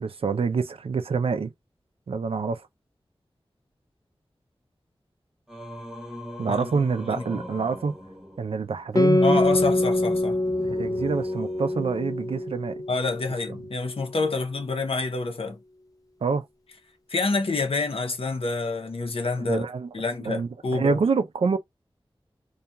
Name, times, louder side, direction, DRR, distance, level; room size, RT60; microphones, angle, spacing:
voice 1, 0.0-1.5 2.1-2.6 6.4-7.9 8.4-9.4 10.6-12.8 16.2-16.4 19.4-19.9 20.2-21.6, right 5 dB, 80° right, 0.4 m, -26 dB
Singing, 5.5-12.8, equal, 5° right, 0.8 m, -40 dB
voice 2, 7.1-7.4 9.2-10.4 12.9-15.6 17.1-19.6 19.9-21.0, left 3 dB, 75° left, 0.7 m, -27 dB
Guitar, 9.0-13.9, left 2 dB, 40° left, 0.5 m, -25 dB
2.8 x 2.3 x 2.2 m
wide cardioid pair, 55°, 10 cm